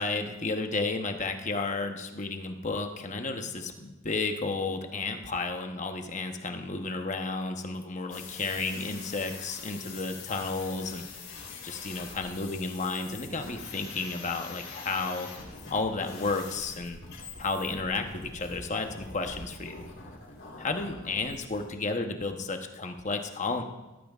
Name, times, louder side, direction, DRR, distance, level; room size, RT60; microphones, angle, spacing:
voice 1, 0.0-11.1 11.6-15.3 15.7-17.0 17.4-19.9 20.6-23.6, left 3 dB, 35° left, 5 dB, 0.9 m, -32 dB
sound 1, 8.1-21.7, left 4 dB, 65° left, 3.5 m, -44 dB
17.5 x 12.5 x 2.4 m, 1.1 s
head